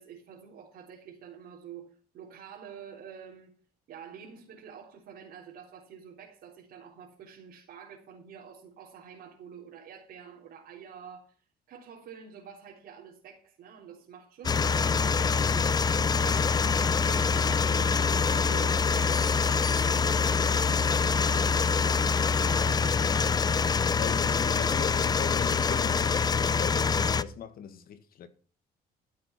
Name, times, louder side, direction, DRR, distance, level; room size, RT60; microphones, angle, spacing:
voice 1, 0.0-3.5 3.9-11.4 11.7-15.7 16.2-20.2 20.5-23.4, right 7 dB, 65° right, 3.7 m, -48 dB
sound 1, 14.4-27.2, left 5 dB, 25° left, 0.6 m, -25 dB
voice 2, 24.0-28.3, left 8 dB, 60° left, 1.8 m, -40 dB
14.5 x 7.9 x 5.9 m
cardioid pair, 110°, 17 cm